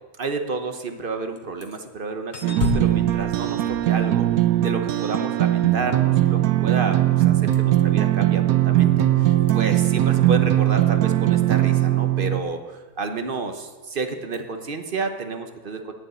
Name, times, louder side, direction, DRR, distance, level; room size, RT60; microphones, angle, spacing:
voice 1, 0.2-4.3 4.6-15.9, right 3 dB, 45° right, 6 dB, 0.9 m, -30 dB
sound 1, 1.4-1.8 2.3-4.7 7.5-7.8 8.8-9.0 9.4-9.5 14.3-14.4, left 6 dB, 50° left, 1.3 m, -32 dB
sound 2, 2.4-12.4, right 14 dB, 85° right, 1.1 m, -20 dB
9.4 x 7.3 x 9.0 m, 1.3 s
omnidirectional pair, 1.5 m